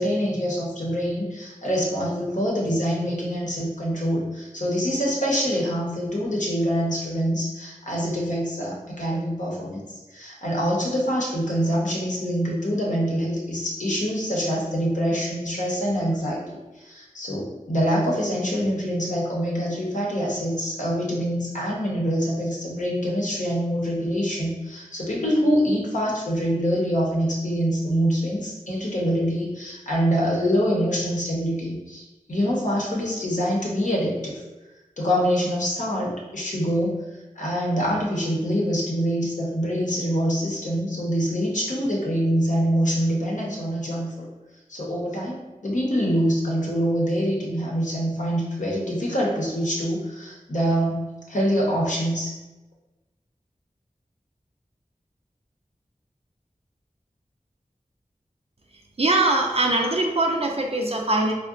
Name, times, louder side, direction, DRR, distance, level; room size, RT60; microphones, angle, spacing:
voice 1, 0.0-9.8 10.1-34.4 35.0-37.0 37.4-44.3 44.7-52.3, equal, 65° left, -4 dB, 0.8 m, -25 dB
voice 2, 59.0-61.3, right 2 dB, 45° right, 1 dB, 0.5 m, -22 dB
3.7 x 2.1 x 2.4 m, 1.1 s
wide cardioid pair, 50°, 14 cm